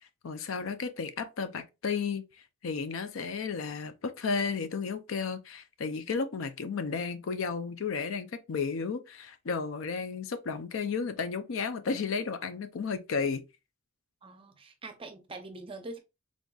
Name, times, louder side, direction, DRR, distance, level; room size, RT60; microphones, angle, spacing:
voice 1, 0.2-2.2 2.6-13.4, left 5 dB, 70° left, 0.5 m, -33 dB
voice 2, 14.2-16.0, right 2 dB, 25° right, 0.6 m, -43 dB
3.9 x 3.6 x 2.3 m
head